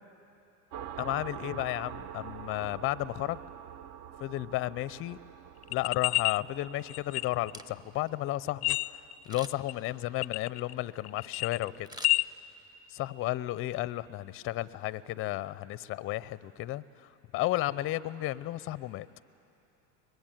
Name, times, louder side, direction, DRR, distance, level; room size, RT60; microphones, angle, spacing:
sound 1, 0.7-10.0, right 9 dB, 50° right, 0.8 m, -46 dB
voice 1, 1.0-3.4 4.2-5.2 5.7-11.9 12.9-19.1, left 16 dB, 30° left, 18 dB, 0.5 m, -33 dB
sound 2, 5.6-6.4 6.9-7.6 8.5-9.2 9.7-9.8 10.2-10.8 11.1-12.2, left 19 dB, 85° left, 0.5 m, -29 dB
Camera, 7.5-8.1 9.2-9.8 11.8-12.8 13.2-13.3, equal, 10° right, 0.9 m, -47 dB
23.5 x 20.5 x 9.1 m, 2.8 s
hypercardioid pair, 105°, 44 cm